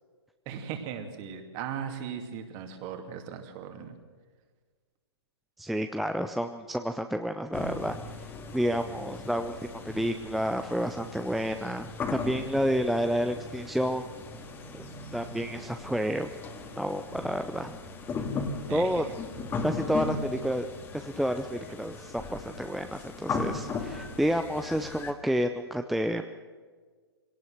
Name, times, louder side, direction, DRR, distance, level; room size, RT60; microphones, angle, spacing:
voice 1, 0.5-4.0 18.7-19.1, right 8 dB, 30° right, 6 dB, 2.7 m, -38 dB
voice 2, 5.6-8.0 8.5-14.0 14.7-14.8 15.1-16.3 16.8-17.8 18.7-19.0 19.6-20.6 20.9-26.2, equal, ahead, 7 dB, 0.6 m, -30 dB
sound 1, 7.5-25.1, left 4 dB, 15° left, 2.0 m, -38 dB
22.5 x 18.0 x 6.6 m, 1.5 s
figure-of-eight pair, 120°, 14 cm